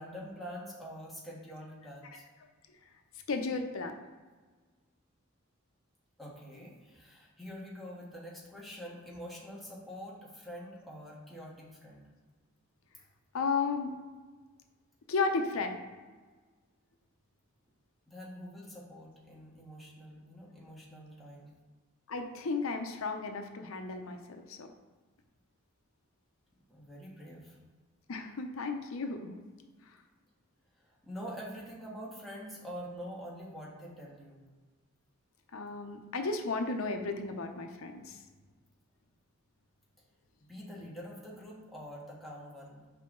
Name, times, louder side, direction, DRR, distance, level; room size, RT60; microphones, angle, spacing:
voice 1, 0.0-2.2 6.2-12.1 18.1-21.6 26.7-27.6 30.8-34.4 40.4-42.9, equal, ahead, -6 dB, 1.4 m, -45 dB
voice 2, 3.3-3.9 13.3-13.9 15.1-15.8 22.1-24.7 28.1-29.4 35.5-38.2, left 4 dB, 90° left, 6 dB, 0.6 m, -34 dB
5.7 x 4.7 x 3.7 m, 1.4 s
head